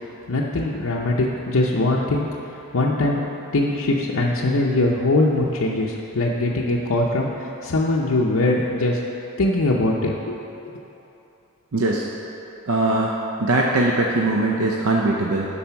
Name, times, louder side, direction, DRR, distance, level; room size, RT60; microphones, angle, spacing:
voice 1, 0.3-2.3 2.7-9.0 9.4-10.4, left 2 dB, 70° left, -4 dB, 0.7 m, -21 dB
voice 2, 11.7-12.0 12.7-13.1 13.4-15.4, right 2 dB, 75° right, -1 dB, 0.6 m, -20 dB
11.5 x 4.1 x 5.8 m, 3.0 s
head